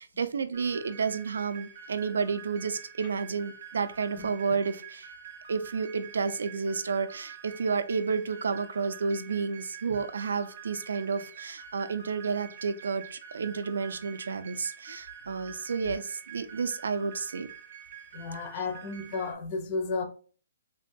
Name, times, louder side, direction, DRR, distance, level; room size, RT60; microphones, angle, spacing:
voice 1, 0.0-5.1 5.5-17.5, right 5 dB, 75° right, 0.4 m, -31 dB
sound 1, 0.5-19.3, right 8 dB, 30° right, 0.6 m, -47 dB
voice 2, 18.1-20.0, left 4 dB, 25° left, 0.4 m, -33 dB
3.3 x 2.2 x 2.6 m
hypercardioid pair, 175°, 0 cm